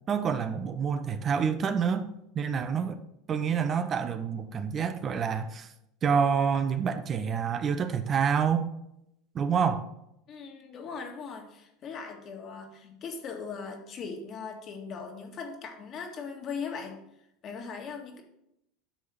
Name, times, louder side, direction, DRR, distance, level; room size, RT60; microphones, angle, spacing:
voice 1, 0.1-2.1 2.3-3.0 3.3-5.7 6.0-8.7 9.3-9.9, right 6 dB, 35° right, 10 dB, 0.7 m, -27 dB
voice 2, 10.3-17.0 17.4-18.2, left 5 dB, 40° left, 3 dB, 1.9 m, -39 dB
10.0 x 3.7 x 6.6 m, 0.81 s
hypercardioid pair, 100°, 0 cm